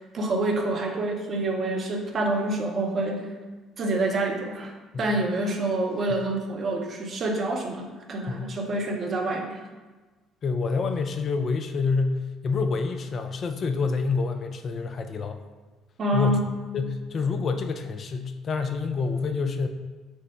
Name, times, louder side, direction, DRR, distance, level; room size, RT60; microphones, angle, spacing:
voice 1, 0.0-3.2 3.8-4.7 5.0-9.5 16.0-16.5, right 2 dB, 45° right, 2 dB, 0.7 m, -27 dB
voice 2, 10.4-15.4 16.1-16.4 16.7-19.7, left 4 dB, 45° left, 7 dB, 0.3 m, -27 dB
4.4 x 2.1 x 4.4 m, 1.3 s
figure-of-eight pair, 50°, 0 cm